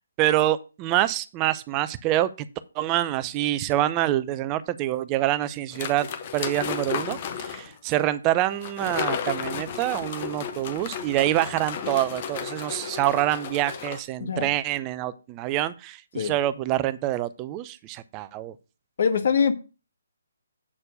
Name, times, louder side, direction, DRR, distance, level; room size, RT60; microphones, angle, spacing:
voice 1, 0.2-2.3 2.8-6.1 6.3-18.5, right 14 dB, 20° right, 0.6 m, -26 dB
sound 1, 5.7-7.7 8.6-14.0, left 8 dB, 35° left, 1.0 m, -33 dB
voice 2, 14.2-14.5 16.1-16.3 19.0-19.5, left 6 dB, 50° left, 1.3 m, -23 dB
8.5 x 4.4 x 6.6 m
figure-of-eight pair, 140°, 0 cm